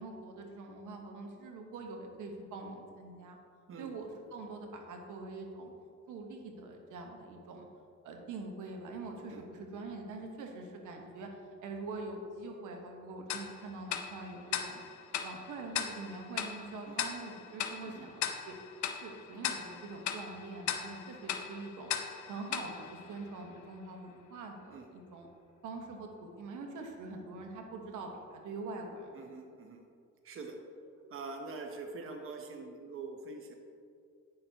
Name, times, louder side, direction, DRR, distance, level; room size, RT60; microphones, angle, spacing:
voice 1, 0.0-3.4 3.8-5.7 6.1-7.7 8.0-11.3 11.6-14.8 15.2-18.5 18.9-21.9 22.3-25.3 25.6-29.3, right 3 dB, 85° right, 2 dB, 1.1 m, -44 dB
voice 2, 3.7-4.1 9.3-9.4 16.9-17.0 17.8-18.1 24.7-24.8 29.1-29.8 30.2-30.6 31.1-33.6, right 3 dB, 45° right, 3 dB, 0.9 m, -44 dB
Tick-tock, 13.3-23.7, left 8 dB, 70° left, 0.8 m, -39 dB
9.7 x 6.7 x 2.8 m, 2.3 s
cardioid pair, 90°, 30 cm